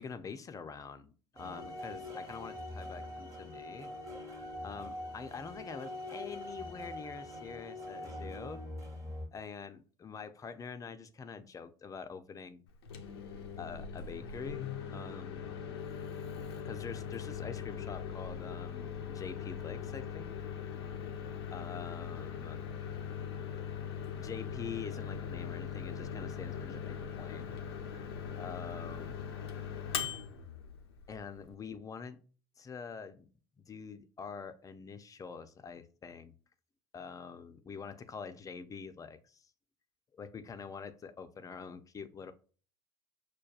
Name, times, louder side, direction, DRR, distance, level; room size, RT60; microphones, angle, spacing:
voice 1, 0.0-3.9 4.6-8.6 9.3-12.6 13.6-15.6 16.6-20.3 21.5-22.6 24.2-27.5 28.4-29.1 31.1-32.2 32.6-33.3 33.6-36.3 36.9-39.5 40.2-42.3, left 6 dB, 25° left, 9 dB, 0.4 m, -45 dB
sound 1, 1.4-9.3, left 1 dB, 25° right, 1.1 m, -43 dB
Microwave oven, 12.7-31.5, left 7 dB, 80° left, 0.5 m, -41 dB
6.2 x 2.2 x 2.3 m, 0.39 s
hypercardioid pair, 70°, 13 cm